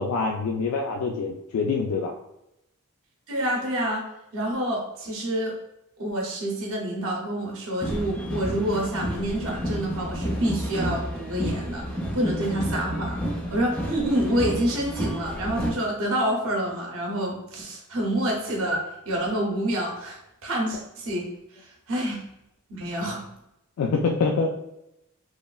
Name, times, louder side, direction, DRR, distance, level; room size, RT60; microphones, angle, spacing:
voice 1, 0.0-2.1 23.8-24.5, left 4 dB, 70° left, 3 dB, 0.3 m, -25 dB
voice 2, 3.3-4.0 4.3-5.5 6.0-11.9 12.1-13.2 13.5-18.8 19.1-21.3 21.5-22.2 22.7-23.2, right 1 dB, 65° right, -1 dB, 0.7 m, -27 dB
sound 1, 7.8-15.7, equal, 5° left, 0.4 m, -31 dB
3.1 x 2.3 x 2.3 m, 0.84 s
head